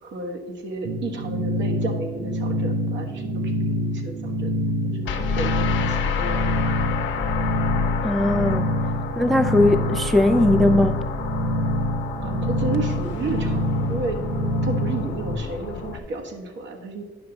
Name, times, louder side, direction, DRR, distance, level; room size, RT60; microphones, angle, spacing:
voice 1, 0.0-4.5 4.8-6.5 12.2-14.2 14.6-17.0, right 2 dB, 65° right, 1.3 m, -32 dB
sound 1, 0.8-15.4, equal, 90° right, 1.0 m, -26 dB
sound 2, 5.0-16.0, left 7 dB, 70° left, 0.8 m, -29 dB
voice 2, 8.0-8.7 9.2-11.0, left 1 dB, ahead, 0.3 m, -19 dB
9.4 x 5.8 x 3.9 m
cardioid pair, 90°, 20 cm